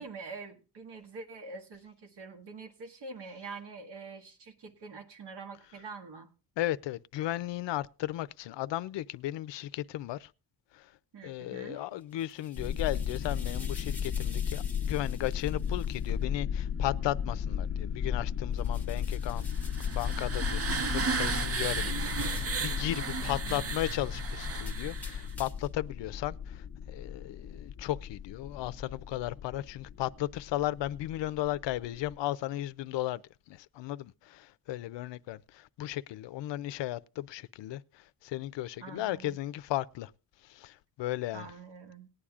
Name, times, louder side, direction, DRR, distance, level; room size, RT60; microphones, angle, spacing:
voice 1, 0.0-6.3 11.1-11.9 23.2-23.7 38.8-39.4 41.3-42.1, right 4 dB, 75° right, 1.7 m, -45 dB
voice 2, 6.6-10.3 10.7-10.9 11.2-19.5 19.8-33.2 33.5-40.1 40.4-41.5, left 14 dB, 90° left, 0.5 m, -35 dB
sound 1, 12.0-16.1 18.5-20.4 21.8-22.7 24.6-25.8, left 3 dB, 5° left, 1.0 m, -51 dB
sound 2, 12.6-32.2, left 8 dB, 35° left, 0.6 m, -35 dB
sound 3, 19.5-25.3, right 4 dB, 35° right, 0.6 m, -34 dB
18.5 x 9.9 x 2.4 m
wide cardioid pair, 145°, 42 cm